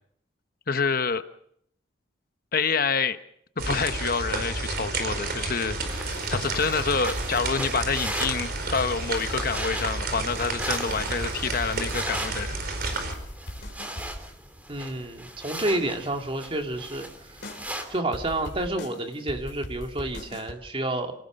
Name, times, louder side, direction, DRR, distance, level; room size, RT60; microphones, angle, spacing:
voice 1, 0.7-1.2 2.5-3.2 3.6-12.6, left 5 dB, 50° left, 10 dB, 1.0 m, -27 dB
sound 1, 3.6-13.1, right 2 dB, 55° right, 4.8 m, -31 dB
sound 2, 5.9-18.0, right 1 dB, 10° right, 2.9 m, -38 dB
sound 3, 12.8-14.2 17.4-17.7 18.1-20.5, left 1 dB, 70° left, 4.1 m, -40 dB
voice 2, 14.7-17.4 17.9-21.1, right 1 dB, 30° right, 4 dB, 2.6 m, -30 dB
28.5 x 18.5 x 6.5 m, 0.69 s
head